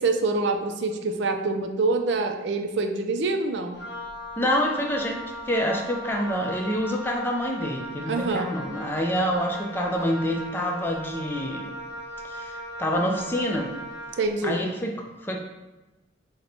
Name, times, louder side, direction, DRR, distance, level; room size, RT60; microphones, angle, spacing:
voice 1, 0.0-3.8 8.1-8.5 14.2-14.6, right 3 dB, 70° right, 5 dB, 0.4 m, -25 dB
Wind instrument woodwind instrument, 3.7-14.3, equal, 60° left, 0.6 m, -38 dB
voice 2, 4.4-11.7 12.2-13.7 14.4-14.9 15.2-15.4, equal, 10° left, 1 dB, 0.4 m, -27 dB
3.9 x 2.1 x 4.3 m, 1.1 s
head